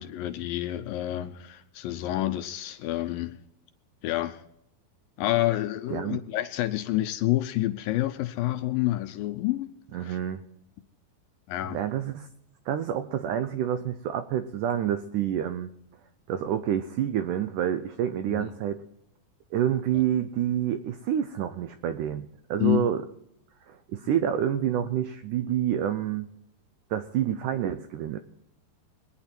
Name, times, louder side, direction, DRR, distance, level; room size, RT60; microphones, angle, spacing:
voice 1, 0.0-3.4 4.0-4.4 5.2-10.2 11.5-11.8 18.3-18.5 22.6-22.9, left 15 dB, 80° left, 2.2 m, -28 dB
voice 2, 9.9-10.4 11.7-12.3 12.7-15.7 16.3-18.8 19.5-23.0 23.7-26.3 26.9-28.2, right 10 dB, 85° right, 1.8 m, -28 dB
22.0 x 9.8 x 4.4 m
omnidirectional pair, 4.5 m